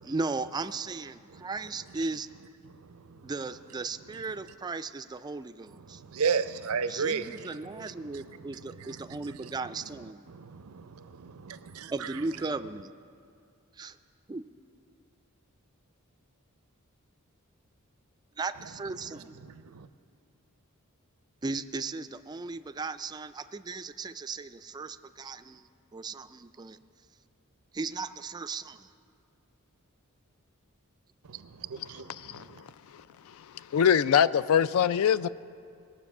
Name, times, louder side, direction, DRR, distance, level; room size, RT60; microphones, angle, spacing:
voice 1, 0.0-2.3 3.2-6.0 6.9-10.3 11.9-12.9 13.8-14.0 14.3-14.5 18.4-19.4 21.4-26.8 27.7-28.9, right 3 dB, 20° right, 0.3 m, -36 dB
voice 2, 5.8-8.3 8.7-9.5 10.3-12.1 19.0-19.9 31.3-32.4, right 6 dB, 85° right, 0.5 m, -35 dB
voice 3, 31.8-32.4 33.4-35.3, left 8 dB, 75° left, 0.3 m, -24 dB
20.5 x 7.3 x 6.0 m
head